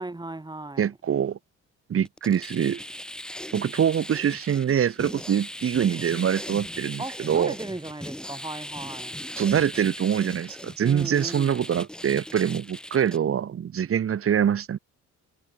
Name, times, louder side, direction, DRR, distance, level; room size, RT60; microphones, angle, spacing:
voice 1, 0.0-0.9 7.0-9.2 10.8-11.6, right 2 dB, 15° right, 5.2 m, -36 dB
voice 2, 0.8-1.4 1.9-2.8 3.5-7.5 9.4-14.8, right 8 dB, 50° right, 1.4 m, -24 dB
sound 1, 2.1-13.2, equal, 5° left, 1.9 m, -39 dB
cardioid pair, 90°, 30 cm